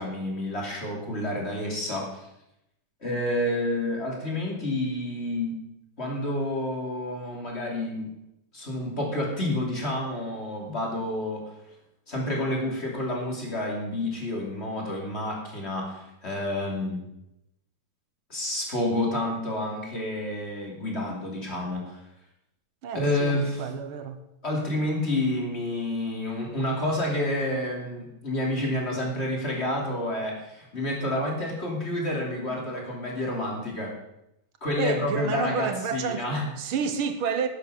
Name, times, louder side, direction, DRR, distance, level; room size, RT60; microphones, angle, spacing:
voice 1, 0.0-2.2 3.0-5.6 6.0-8.1 8.5-11.5 12.1-17.0 18.3-22.0 22.9-23.6 24.4-33.9 34.6-36.5, left 1 dB, 30° left, 3.0 m, -29 dB
voice 2, 22.8-24.2 34.8-36.3 36.6-37.5, right 6 dB, 80° right, 1.9 m, -30 dB
12.5 x 8.4 x 6.6 m
omnidirectional pair, 2.3 m